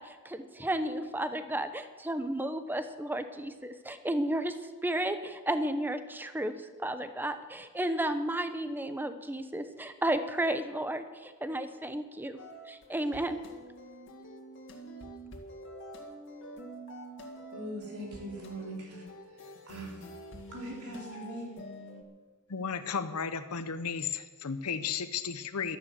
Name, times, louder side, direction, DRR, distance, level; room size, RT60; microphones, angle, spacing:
voice 1, 0.0-4.6 4.8-12.4 12.7-13.4, right 1 dB, 10° right, 10 dB, 0.8 m, -33 dB
sound 1, 12.4-22.0, right 1 dB, 60° left, 2.0 m, -47 dB
voice 2, 17.5-20.2 20.5-21.5, right 1 dB, 85° right, -3 dB, 3.9 m, -42 dB
voice 3, 22.5-25.8, left 6 dB, 85° left, 11 dB, 0.8 m, -34 dB
12.5 x 11.0 x 7.5 m, 1.4 s
head